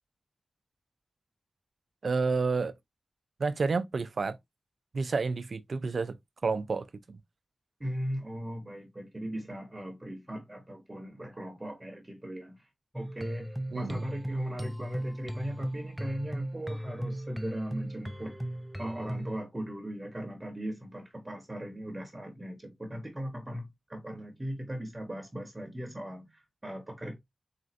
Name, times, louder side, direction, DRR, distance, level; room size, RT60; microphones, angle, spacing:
voice 1, 2.0-2.7 3.4-4.4 4.9-6.2 6.4-7.2 13.7-14.0, right 4 dB, 65° right, 0.5 m, -30 dB
voice 2, 7.8-12.7 12.9-18.4 18.8-27.2, equal, 20° right, 1.0 m, -38 dB
sound 1, 12.9-19.4, right 1 dB, 5° right, 0.5 m, -37 dB
4.2 x 3.8 x 2.5 m
cardioid pair, 65°, 0 cm